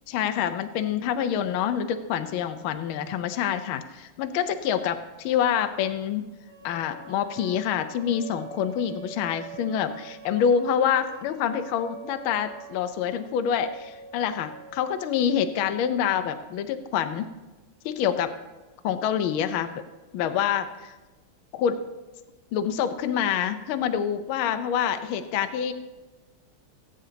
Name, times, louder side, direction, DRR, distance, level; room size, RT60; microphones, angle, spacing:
voice 1, 0.1-6.2 6.6-17.3 17.8-18.3 18.8-19.7 20.1-20.9 21.5-21.8 22.5-25.7, left 8 dB, 75° left, 9 dB, 1.5 m, -26 dB
sound 1, 6.4-15.4, right 4 dB, 75° right, 2.7 m, -44 dB
18.5 x 8.9 x 2.8 m, 1.2 s
omnidirectional pair, 2.4 m